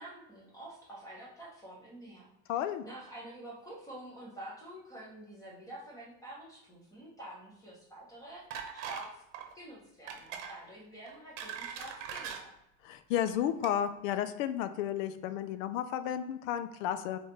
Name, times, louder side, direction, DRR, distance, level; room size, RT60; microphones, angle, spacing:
voice 1, 0.0-9.2 9.5-12.5, right 1 dB, 10° left, -4 dB, 0.9 m, -48 dB
voice 2, 2.5-2.8 12.8-17.2, left 10 dB, 80° left, 11 dB, 0.5 m, -32 dB
sound 1, 8.5-9.1 9.3-9.5 10.1-10.5 11.1-12.4 13.1-13.3 13.6-13.7, right 8 dB, 65° right, 0.9 m, -41 dB
4.0 x 3.8 x 3.3 m, 0.85 s
supercardioid pair, 170°, 39 cm